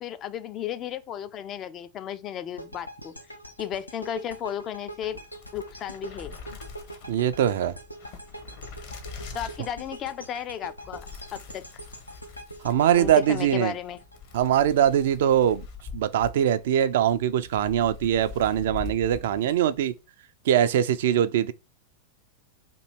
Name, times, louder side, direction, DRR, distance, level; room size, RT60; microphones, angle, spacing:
voice 1, 0.0-3.2 3.6-5.2 5.5-6.4 9.3-11.7 13.0-14.0, left 10 dB, 30° left, 0.4 m, -34 dB
sound 1, 2.6-14.8, right 1 dB, 90° left, 0.5 m, -43 dB
sound 2, 5.0-19.9, left 5 dB, 50° left, 1.0 m, -44 dB
voice 2, 7.1-7.8 12.6-13.7 14.3-15.7 15.9-19.9 20.5-21.5, right 10 dB, 55° right, 0.3 m, -22 dB
3.0 x 2.7 x 4.4 m
figure-of-eight pair, 90°, 0 cm